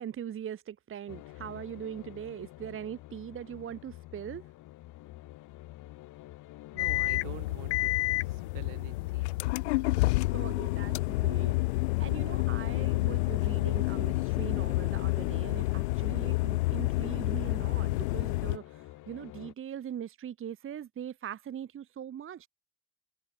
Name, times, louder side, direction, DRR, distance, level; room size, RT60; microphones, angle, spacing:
voice 1, 0.0-4.5 10.3-22.5, right 9 dB, 40° right, 0.9 m, -41 dB
sound 1, 1.1-19.5, left 17 dB, 70° left, 4.7 m, -48 dB
voice 2, 6.7-7.9 8.2-9.4, right 22 dB, 75° right, 3.2 m, -47 dB
sound 2, 6.8-18.6, left 21 dB, 90° left, 0.6 m, -29 dB
hypercardioid pair, 60°, 32 cm